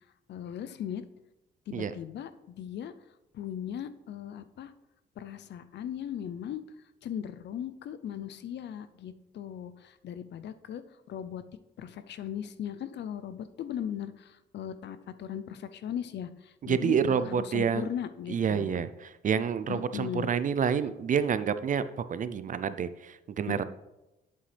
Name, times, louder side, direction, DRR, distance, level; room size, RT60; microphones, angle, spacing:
voice 1, 0.3-1.0 1.7-2.9 3.3-4.7 5.2-6.6 7.0-10.8 11.1-11.4 11.8-18.8 19.7-20.3 23.5-23.6, left 9 dB, 60° left, 13 dB, 0.5 m, -38 dB
voice 2, 16.7-17.9 18.3-23.6, right 7 dB, 40° right, 13 dB, 0.4 m, -28 dB
8.3 x 7.6 x 3.3 m, 0.98 s
cardioid pair, 90°, 20 cm